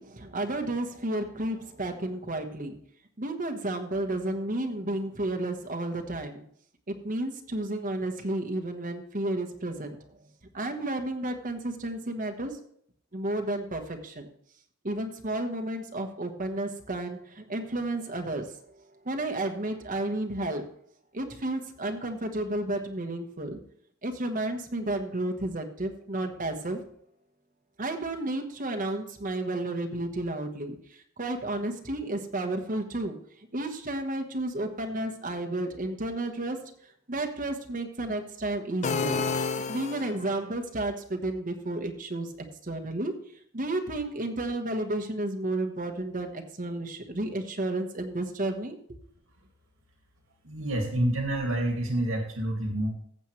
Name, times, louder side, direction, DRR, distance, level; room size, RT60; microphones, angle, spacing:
voice 1, 0.0-2.7 3.2-6.4 6.9-10.0 10.5-12.6 13.1-14.3 14.8-18.6 19.0-20.6 21.1-23.6 24.0-26.8 27.8-33.2 33.5-36.6 37.1-39.2 39.7-42.3 42.6-43.1 43.5-48.7, right 1 dB, 40° right, 4 dB, 1.3 m, -32 dB
sound 1, 38.8-40.4, left 5 dB, 35° left, 0.4 m, -30 dB
voice 2, 50.4-52.9, right 1 dB, 80° right, 2 dB, 2.2 m, -28 dB
15.0 x 7.2 x 3.2 m, 0.66 s
head